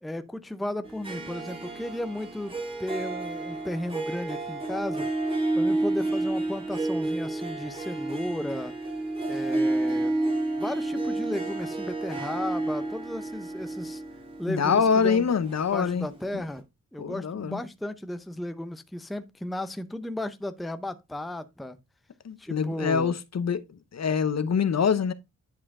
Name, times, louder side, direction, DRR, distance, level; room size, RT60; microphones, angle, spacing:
voice 1, 0.0-5.1 5.5-8.8 9.3-10.2 10.6-14.0 14.4-15.3 15.7-16.6 16.9-21.8 22.4-23.1, left 1 dB, ahead, 0.5 m, -34 dB
Harp, 0.8-16.2, right 2 dB, 15° right, 2.1 m, -30 dB
voice 2, 14.5-16.1 16.3-16.4 17.0-17.6 22.2-23.6 23.9-25.1, left 6 dB, 55° left, 0.8 m, -25 dB
10.5 x 4.3 x 3.6 m
wide cardioid pair, 125°, 32 cm